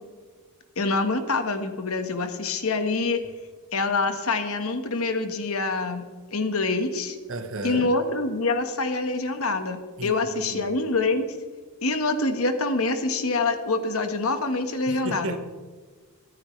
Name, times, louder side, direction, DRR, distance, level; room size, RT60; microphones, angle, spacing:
voice 1, 0.8-3.2 3.7-7.2 7.6-11.3 11.8-15.4, left 3 dB, 70° left, 7 dB, 1.6 m, -26 dB
voice 2, 7.3-7.9 10.0-10.7 14.9-15.4, right 2 dB, 60° right, 8 dB, 1.2 m, -33 dB
25.5 x 9.7 x 3.3 m, 1.5 s
head